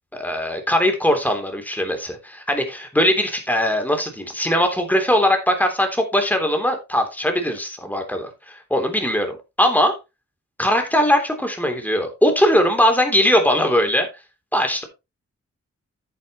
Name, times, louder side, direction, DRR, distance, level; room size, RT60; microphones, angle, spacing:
voice 1, 0.1-10.0 10.6-14.1 14.5-14.8, equal, 5° left, 3.5 m, -20 dB
10.0 x 9.3 x 3.2 m
cardioid pair, 75°, 29 cm